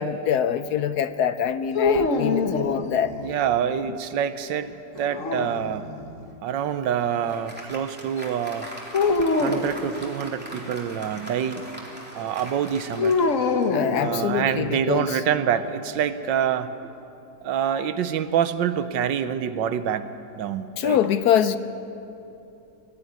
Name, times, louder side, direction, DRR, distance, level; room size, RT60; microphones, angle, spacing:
voice 1, 0.0-3.1 13.7-15.2 17.6-17.8 20.8-21.6, left 9 dB, 70° left, 12 dB, 1.1 m, -24 dB
sound 1, 1.7-3.3 5.0-6.1 8.9-9.7 13.0-14.6, left 4 dB, 50° left, 1.4 m, -24 dB
voice 2, 3.2-5.9 6.4-8.7 9.4-11.6 12.1-13.1 14.0-16.7 17.4-21.0, right 8 dB, 85° right, 12 dB, 1.5 m, -26 dB
Applause, 6.8-14.2, equal, 5° right, 2.8 m, -41 dB
19.5 x 14.0 x 9.5 m, 2.8 s
omnidirectional pair, 1.9 m